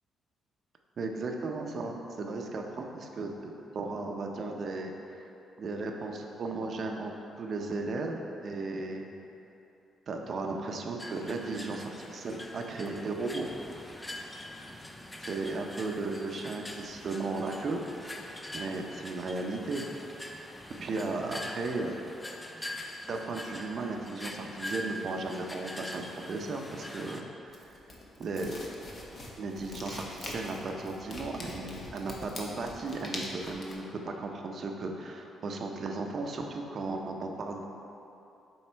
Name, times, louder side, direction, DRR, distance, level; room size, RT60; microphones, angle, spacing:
voice 1, 1.0-5.2 5.6-7.1 7.4-9.1 10.1-13.5 15.2-18.2 18.5-19.8 20.8-21.9 23.1-27.6 28.2-28.5 29.4-37.6, right 3 dB, 50° right, 2 dB, 0.6 m, -35 dB
sound 1, 11.0-27.2, left 1 dB, 15° left, 0.5 m, -43 dB
sound 2, 27.5-33.7, left 2 dB, 45° left, 1.0 m, -43 dB
7.4 x 3.2 x 4.5 m, 2.9 s
cardioid pair, 90°, 0 cm